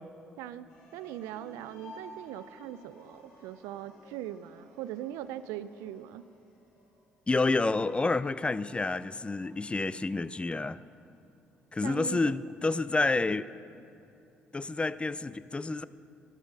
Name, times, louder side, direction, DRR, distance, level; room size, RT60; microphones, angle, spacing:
sound 1, 0.7-11.0, left 1 dB, 85° left, 3.2 m, -55 dB
voice 1, 0.9-6.2 11.8-12.3, right 12 dB, 80° right, 0.4 m, -40 dB
voice 2, 7.3-10.8 11.7-13.5 14.5-15.8, left 3 dB, 20° left, 0.4 m, -29 dB
13.0 x 9.8 x 5.4 m
hypercardioid pair, 55°, 5 cm